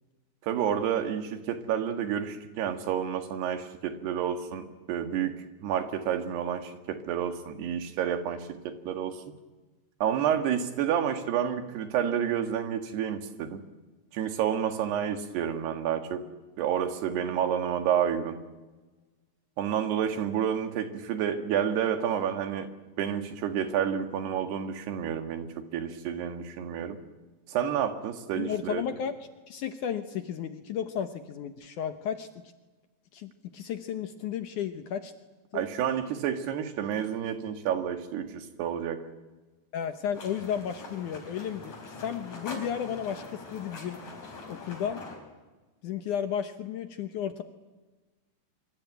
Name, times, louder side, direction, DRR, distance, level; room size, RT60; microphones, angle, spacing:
voice 1, 0.4-9.2 10.0-13.6 14.1-16.3 16.6-18.4 19.6-22.7 23.0-27.0 27.5-28.8 35.5-39.0, right 9 dB, 80° right, 8 dB, 3.9 m, -29 dB
voice 2, 28.4-29.2 29.5-32.3 33.1-35.1 35.5-35.6 39.7-41.7 42.0-44.0 44.5-45.0 45.8-47.4, left 8 dB, 70° left, 9 dB, 2.1 m, -33 dB
sound 1, 40.1-45.2, left 3 dB, 50° left, 6.1 m, -43 dB
24.5 x 23.5 x 9.3 m, 1.2 s
omnidirectional pair, 4.6 m